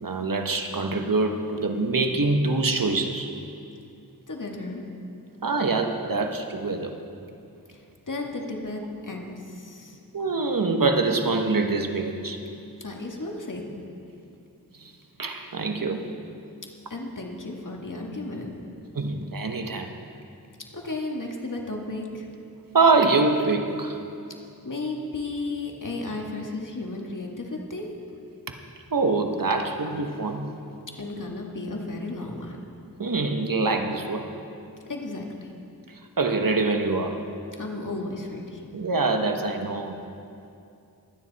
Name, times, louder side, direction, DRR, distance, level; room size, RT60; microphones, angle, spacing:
voice 1, 0.0-3.3 5.4-6.9 10.1-12.4 14.8-14.9 15.2-16.1 18.9-19.9 22.7-24.0 28.9-30.5 33.0-34.3 35.9-37.2 38.7-40.0, right 3 dB, 60° right, 4 dB, 1.3 m, -24 dB
voice 2, 4.3-4.8 7.7-7.8 8.1-10.0 12.8-13.7 16.9-18.5 20.7-22.3 24.6-27.9 31.0-32.6 34.9-35.5 37.6-38.6, left 2 dB, 55° left, 0 dB, 2.1 m, -34 dB
23.5 x 9.6 x 4.2 m, 2.6 s
cardioid pair, 40°, 37 cm